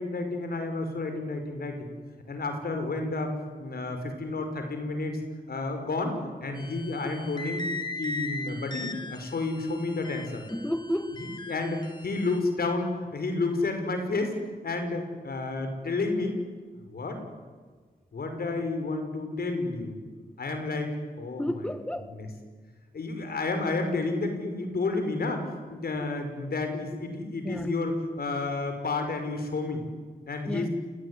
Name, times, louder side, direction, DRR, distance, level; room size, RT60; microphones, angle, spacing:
voice 1, 0.0-1.9 2.3-3.3 3.6-5.2 5.5-7.7 8.0-10.4 11.2-14.3 14.6-16.4 16.9-17.2 18.1-20.0 20.4-21.7 22.1-22.3 22.9-29.8 30.3-30.7, left 3 dB, 75° left, 5.6 m, -31 dB
sound 1, 6.6-12.4, left 2 dB, 25° left, 3.4 m, -39 dB
voice 2, 10.5-11.2 21.4-22.1 27.4-27.7 30.5-30.7, equal, 5° left, 1.7 m, -31 dB
28.5 x 20.0 x 9.9 m
cardioid pair, 75°, 16 cm